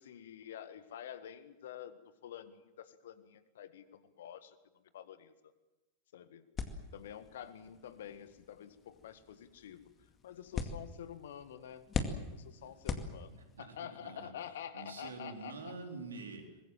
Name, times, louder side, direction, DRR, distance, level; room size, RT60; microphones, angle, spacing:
voice 1, 0.0-4.6 4.9-5.5 6.1-6.5 6.9-9.9 10.2-11.9 12.3-15.7, left 10 dB, 60° left, 12 dB, 1.7 m, -48 dB
sound 1, 6.6-13.7, left 5 dB, 25° left, 2.3 m, -42 dB
voice 2, 13.6-14.3 14.7-16.6, right 3 dB, 70° right, 4 dB, 4.0 m, -46 dB
24.5 x 21.0 x 7.5 m, 1.0 s
figure-of-eight pair, 90°, 0 cm